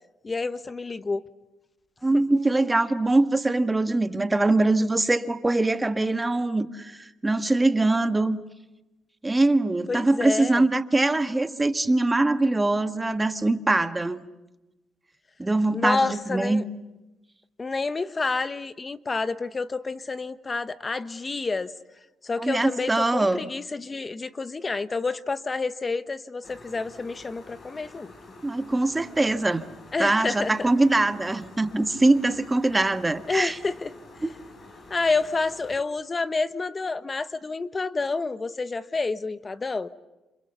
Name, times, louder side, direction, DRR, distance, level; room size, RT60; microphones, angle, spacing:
voice 1, 0.2-1.2 9.9-10.7 15.7-16.6 17.6-21.7 22.2-28.1 29.9-30.7 33.3-33.9 34.9-39.9, left 3 dB, 30° left, 13 dB, 1.1 m, -29 dB
voice 2, 2.0-8.4 9.2-14.2 15.4-16.6 22.4-23.5 28.4-29.6 30.0-33.6, right 2 dB, 15° right, 9 dB, 1.6 m, -23 dB
sound 1, 26.4-35.8, left 2 dB, 50° left, 6.0 m, -48 dB
28.5 x 27.5 x 7.0 m, 1.0 s
cardioid pair, 90°, 0 cm